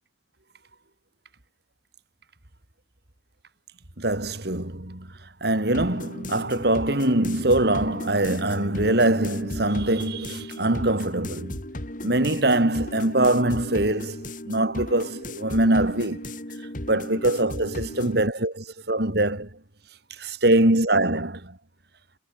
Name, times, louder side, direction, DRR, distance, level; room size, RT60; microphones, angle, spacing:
voice 1, 4.0-5.1 5.4-11.6 12.0-16.3 16.9-19.5 20.2-21.6, right 1 dB, 55° right, 2.8 m, -23 dB
sound 1, 5.7-18.2, left 1 dB, 45° left, 3.9 m, -36 dB
head